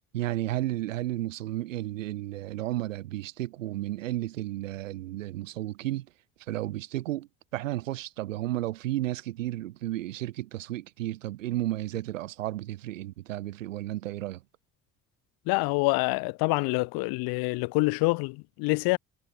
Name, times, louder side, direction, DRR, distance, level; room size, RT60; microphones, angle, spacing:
voice 1, 0.1-6.1 6.5-14.4, right 15 dB, 80° right, 6.6 m, -33 dB
voice 2, 15.5-19.0, left 26 dB, 70° left, 6.9 m, -26 dB
hypercardioid pair, 50°, 38 cm